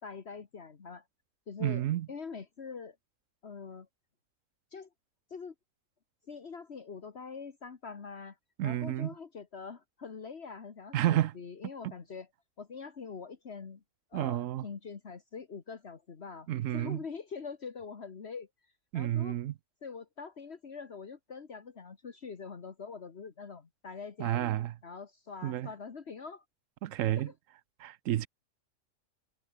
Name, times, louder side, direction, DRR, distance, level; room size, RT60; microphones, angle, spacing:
voice 1, 0.0-1.0 1.5-3.0 3.4-3.9 4.7-4.9 5.3-5.5 6.3-8.4 8.6-12.3 12.6-13.8 14.1-16.5 16.7-18.5 18.9-19.4 19.8-24.5 24.8-26.4 27.2-27.3, left 5 dB, 55° left, 1.7 m, -44 dB
voice 2, 1.6-2.1 8.6-9.1 10.9-11.3 14.1-14.7 16.5-17.0 18.9-19.5 24.2-24.7 25.4-25.7 26.8-27.3 27.8-28.3, right 13 dB, 80° right, 1.0 m, -30 dB
omnidirectional pair, 1.3 m